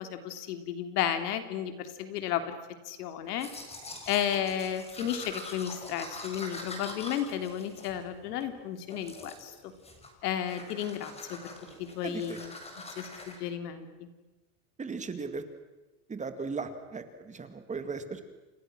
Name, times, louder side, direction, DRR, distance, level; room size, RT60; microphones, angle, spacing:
voice 1, 0.0-2.6 2.9-3.5 4.1-9.7 10.2-11.4 11.8-12.5 13.0-14.1, left 10 dB, 85° left, 8 dB, 3.5 m, -33 dB
Domestic sounds home sounds, 3.3-8.5 8.9-9.5 9.8-10.2 10.5-13.4, left 2 dB, 15° left, 5.0 m, -44 dB
voice 2, 12.0-12.4 14.8-15.4 16.1-18.2, right 4 dB, 15° right, 9 dB, 2.2 m, -37 dB
29.0 x 28.0 x 6.3 m, 1.1 s
supercardioid pair, 145°, 46 cm